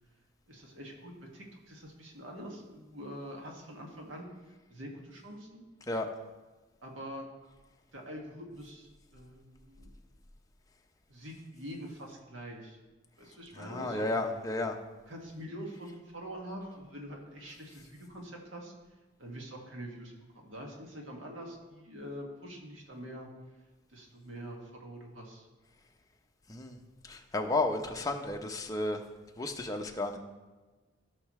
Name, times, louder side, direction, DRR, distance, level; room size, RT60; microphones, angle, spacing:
voice 1, 0.5-4.3 4.7-5.6 6.8-7.3 7.9-9.9 11.1-12.8 13.2-14.0 15.1-18.7 19.2-23.3 23.9-25.5, equal, 80° right, 0 dB, 2.0 m, -45 dB
voice 2, 13.6-14.8 26.5-26.8 27.1-29.0 29.4-30.2, left 2 dB, 20° left, 3 dB, 0.8 m, -32 dB
15.5 x 5.8 x 3.2 m, 1.2 s
head